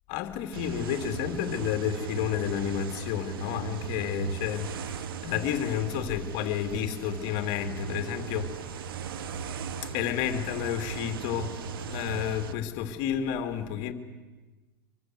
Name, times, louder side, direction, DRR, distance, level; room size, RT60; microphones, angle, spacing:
voice 1, 0.1-9.4 9.8-13.9, left 10 dB, 55° left, 3.2 m, -31 dB
sound 1, 0.5-12.5, right 7 dB, 80° right, 1.7 m, -37 dB
26.5 x 24.0 x 8.1 m
hypercardioid pair, 95°, 12 cm